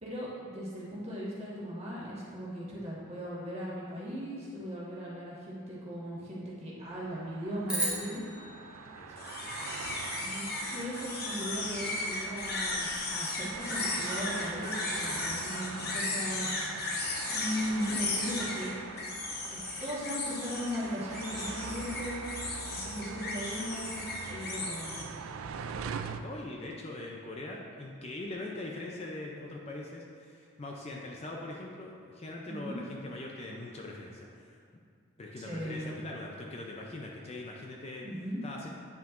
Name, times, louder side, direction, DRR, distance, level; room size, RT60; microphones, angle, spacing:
voice 1, 0.0-8.2 10.2-16.5 16.9-17.0 17.3-18.8 19.5-22.2 22.7-25.1 32.5-32.8 35.4-36.0 38.0-38.4, equal, 30° right, -7 dB, 1.5 m, -38 dB
sound 1, 6.9-26.2, right 6 dB, 75° right, 0.3 m, -43 dB
sound 2, 7.7-10.1, right 1 dB, 5° right, 1.0 m, -37 dB
voice 2, 8.9-9.6 25.7-34.6 35.2-38.1 38.4-38.7, left 2 dB, 30° left, -1 dB, 0.5 m, -42 dB
sound 3, 9.2-25.0, left 2 dB, 45° left, 0.8 m, -36 dB
9.1 x 5.6 x 2.5 m, 2.3 s
head